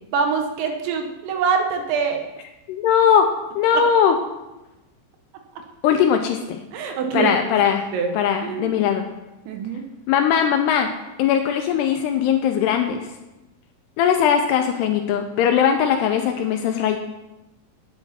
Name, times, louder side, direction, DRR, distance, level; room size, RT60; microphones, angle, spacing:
voice 1, 0.1-2.2 3.7-3.8 6.7-7.5 7.9-8.1 8.4-8.7 9.5-9.8, right 5 dB, 80° right, 4 dB, 3.4 m, -24 dB
voice 2, 2.7-3.3 3.6-4.2 5.8-6.6 7.1-7.9 8.1-9.0 10.1-10.9 11.2-13.0 14.0-17.0, left 8 dB, 80° left, 5 dB, 2.5 m, -19 dB
9.9 x 9.0 x 4.3 m, 0.99 s
omnidirectional pair, 5.2 m